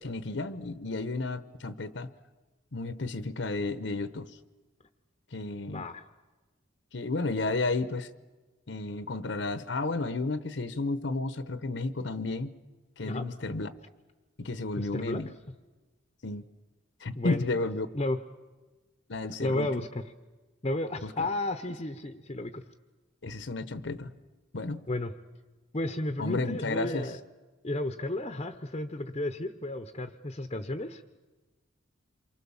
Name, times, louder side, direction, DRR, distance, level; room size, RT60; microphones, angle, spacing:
voice 1, 0.0-2.1 2.7-4.3 5.3-5.9 6.9-8.1 8.7-12.5 13.0-13.7 14.4-15.3 16.2-16.4 17.0-17.9 19.1-19.8 21.0-21.1 23.2-24.1 24.5-24.8 26.2-27.1, left 3 dB, 65° left, 13 dB, 1.0 m, -32 dB
voice 2, 5.7-6.0 13.0-13.2 14.8-15.2 17.1-17.5 17.9-18.2 19.4-20.0 20.6-22.6 24.9-25.1 25.7-27.2 27.6-31.0, left 1 dB, 30° left, 8 dB, 0.9 m, -33 dB
28.0 x 24.0 x 7.2 m, 1.2 s
head